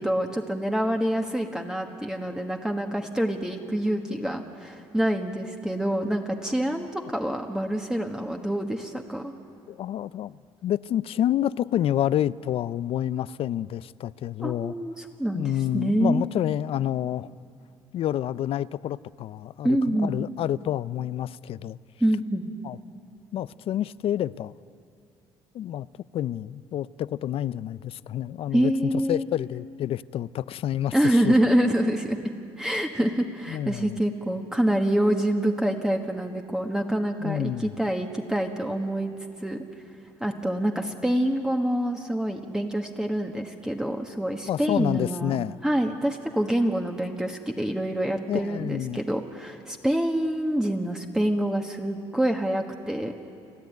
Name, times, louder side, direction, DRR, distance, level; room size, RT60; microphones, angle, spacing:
voice 1, 0.0-9.3 14.4-16.2 19.6-20.1 22.0-22.5 28.5-29.3 30.9-32.2 32.6-39.1 39.4-39.6 40.2-45.3 45.6-53.3, right 1 dB, 5° right, 1.5 m, -26 dB
voice 2, 9.7-14.7 15.3-17.3 17.9-21.8 22.6-22.8 23.3-24.5 25.5-25.9 26.1-31.4 33.5-34.0 37.2-37.7 44.5-45.6 48.3-49.0, left 11 dB, 60° left, 0.5 m, -28 dB
29.5 x 10.5 x 9.3 m
supercardioid pair, 70°, 11 cm